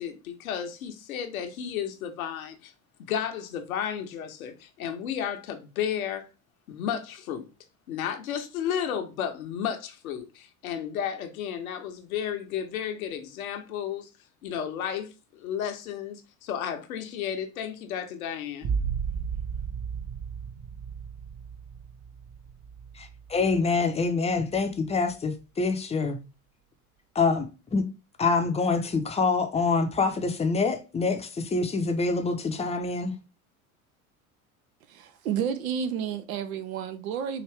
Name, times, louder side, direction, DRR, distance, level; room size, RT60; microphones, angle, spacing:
voice 1, 0.0-2.7 3.0-6.3 6.7-7.4 7.9-14.1 14.4-18.7, left 9 dB, 70° left, 0.9 m, -33 dB
sound 1, 18.6-24.1 24.5-25.1, right 6 dB, 25° right, 0.7 m, -34 dB
voice 2, 23.0-26.2 27.1-27.8 28.2-33.1, left 4 dB, 15° left, 0.7 m, -26 dB
voice 3, 34.9-37.4, right 8 dB, 65° right, 0.7 m, -31 dB
4.7 x 2.5 x 3.4 m
figure-of-eight pair, 75°, 44 cm